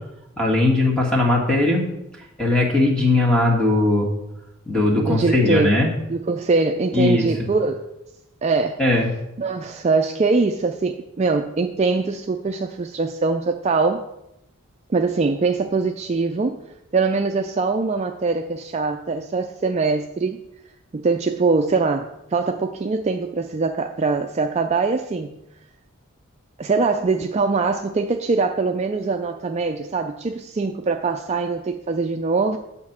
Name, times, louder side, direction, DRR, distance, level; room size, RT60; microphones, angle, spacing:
voice 1, 0.4-1.8 2.4-4.1 4.6-5.9 6.9-7.3 8.8-9.1, left 2 dB, 5° left, -2 dB, 1.7 m, -19 dB
voice 2, 4.9-5.8 6.1-7.9 8.4-8.8 9.4-14.0 14.9-16.6 16.9-20.4 20.9-25.3 26.6-32.6, right 4 dB, 30° right, 5 dB, 0.3 m, -22 dB
8.6 x 4.2 x 7.2 m, 0.87 s
head